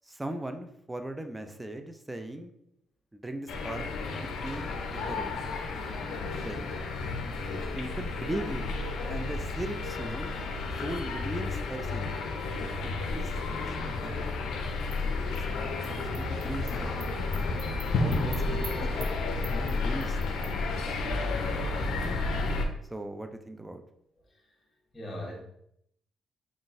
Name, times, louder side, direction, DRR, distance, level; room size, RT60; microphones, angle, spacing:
voice 1, 0.0-2.5 3.1-4.0 4.4-4.7 5.1-5.4 6.4-6.8 7.5-8.6 9.1-10.3 10.7-12.2 12.8-13.3 13.6-14.4 15.3-16.7 18.0-19.1 19.5-20.2 20.5-21.2 22.9-23.8, right 1 dB, 10° right, 6 dB, 0.4 m, -39 dB
sound 1, 3.5-22.7, left 3 dB, 75° left, 0.5 m, -32 dB
sound 2, 14.7-20.5, right 5 dB, 75° right, 0.7 m, -50 dB
voice 2, 24.9-25.4, left 1 dB, 35° left, -2 dB, 1.2 m, -41 dB
3.9 x 2.4 x 3.6 m, 0.73 s
cardioid pair, 90°, 0 cm